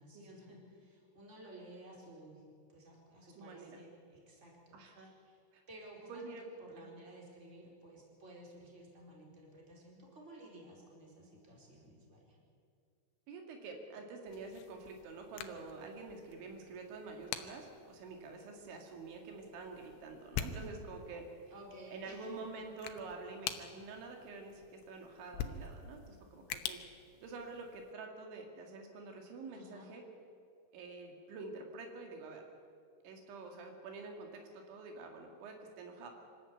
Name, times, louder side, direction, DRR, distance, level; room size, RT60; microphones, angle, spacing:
voice 1, 0.0-5.4 5.7-12.4 21.5-22.5 29.5-29.9, right 1 dB, 15° right, -1 dB, 4.3 m, -55 dB
voice 2, 3.2-3.8 4.7-5.1 5.5-5.6 6.1-6.4 6.8-6.9 13.3-21.2 21.9-26.8 27.2-30.0 30.7-32.4 33.0-36.1, right 3 dB, 80° right, 3 dB, 4.6 m, -47 dB
sound 1, 14.3-27.9, left 8 dB, 85° left, 3.4 m, -47 dB
25.5 x 13.5 x 9.2 m, 2.4 s
omnidirectional pair, 5.3 m